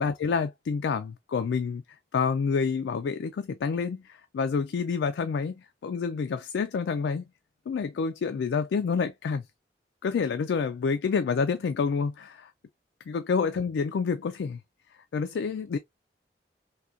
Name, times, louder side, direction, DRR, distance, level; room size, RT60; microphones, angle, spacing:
voice 1, 0.0-1.8 2.1-7.3 7.7-9.4 10.0-12.5 13.1-14.6 15.1-15.8, left 5 dB, 85° left, 0.3 m, -28 dB
3.5 x 2.3 x 2.6 m
head